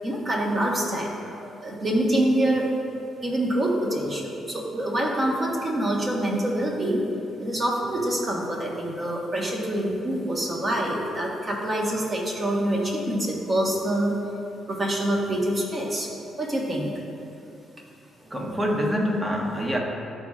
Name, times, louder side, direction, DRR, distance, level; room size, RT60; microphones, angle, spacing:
voice 1, 0.0-1.1 1.6-2.7 3.2-7.1 7.4-14.2 14.7-16.1 16.4-16.9, right 1 dB, 30° right, -2 dB, 1.3 m, -25 dB
voice 2, 18.2-19.8, equal, 15° right, 0 dB, 1.0 m, -25 dB
11.5 x 4.3 x 2.4 m, 2.7 s
cardioid pair, 90°, 0 cm